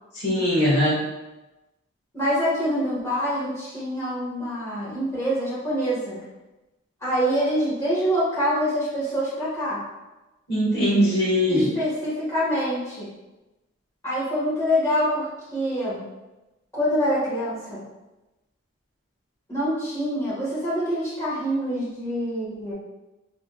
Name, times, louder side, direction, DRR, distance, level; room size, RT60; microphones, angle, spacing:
voice 1, 0.1-1.0 10.5-11.7, equal, 55° left, -6 dB, 1.2 m, -21 dB
voice 2, 2.1-6.2 7.0-9.8 11.5-13.1 14.0-16.0 16.7-17.8 19.5-22.7, equal, 15° left, -10 dB, 1.4 m, -25 dB
3.2 x 3.1 x 2.3 m, 1.0 s
head